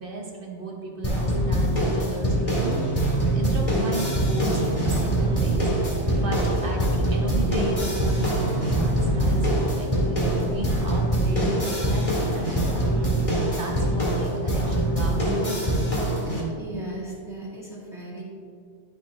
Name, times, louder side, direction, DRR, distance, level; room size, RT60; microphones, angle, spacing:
voice 1, 0.0-3.1 3.3-12.1 12.3-12.9 13.6-15.7, right 2 dB, 55° right, 0 dB, 1.3 m, -36 dB
sound 1, 1.0-16.4, right 1 dB, 30° left, 2.0 m, -24 dB
sound 2, 2.1-14.0, right 4 dB, 30° right, 0.5 m, -33 dB
voice 2, 16.2-18.2, right 2 dB, 5° right, -7 dB, 2.0 m, -37 dB
12.0 x 5.2 x 3.1 m, 2.2 s
omnidirectional pair, 1.2 m